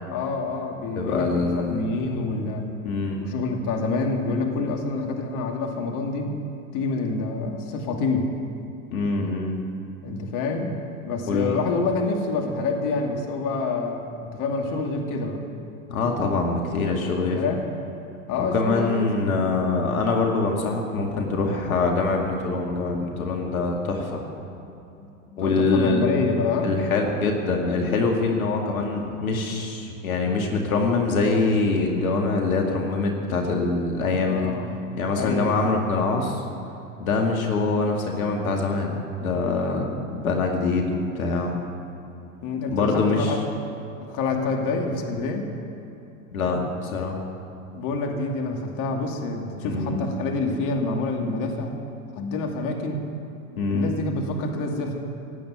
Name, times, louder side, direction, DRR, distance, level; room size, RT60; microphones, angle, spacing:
voice 1, 0.1-2.7 3.2-6.4 6.7-8.3 10.0-10.8 11.0-14.1 14.3-15.4 17.2-17.7 18.3-19.3 25.3-26.7 34.2-34.7 35.1-35.6 42.4-43.4 44.1-45.5 47.7-51.7 52.1-53.0 53.7-55.0, left 3 dB, 45° left, 2 dB, 2.6 m, -27 dB
voice 2, 1.0-1.9 2.8-3.3 8.9-9.6 11.3-11.6 15.9-17.4 18.4-24.3 25.4-26.0 26.6-34.5 35.0-36.4 37.0-41.6 42.7-43.3 46.3-47.2 49.6-50.1 53.6-54.0, left 3 dB, 80° left, 1 dB, 2.3 m, -24 dB
17.0 x 8.6 x 9.7 m, 2.9 s
hypercardioid pair, 90°, 42 cm